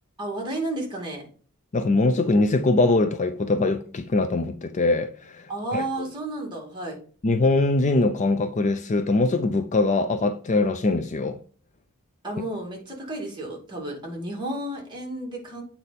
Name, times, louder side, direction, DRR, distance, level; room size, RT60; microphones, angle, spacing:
voice 1, 0.2-1.3 5.5-7.0 12.2-15.6, right 2 dB, 20° right, 2.5 m, -32 dB
voice 2, 1.7-5.8 7.2-11.4, left 2 dB, 35° left, 0.5 m, -22 dB
8.1 x 4.3 x 4.2 m
head